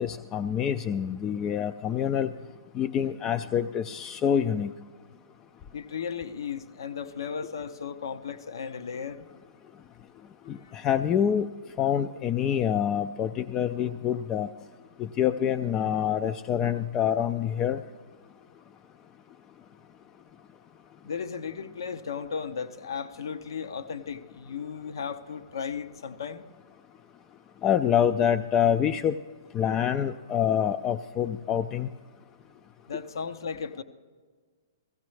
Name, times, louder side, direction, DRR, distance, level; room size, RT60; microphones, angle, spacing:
voice 1, 0.0-2.3 2.7-4.7 10.5-11.5 11.8-14.5 15.0-17.8 27.6-29.2 29.5-31.9, left 9 dB, 20° left, 9 dB, 0.3 m, -26 dB
voice 2, 5.7-9.3 10.6-10.7 21.0-26.4 32.9-33.8, left 6 dB, 75° left, 11 dB, 0.7 m, -35 dB
16.0 x 16.0 x 3.2 m, 1.5 s
hypercardioid pair, 140°, 2 cm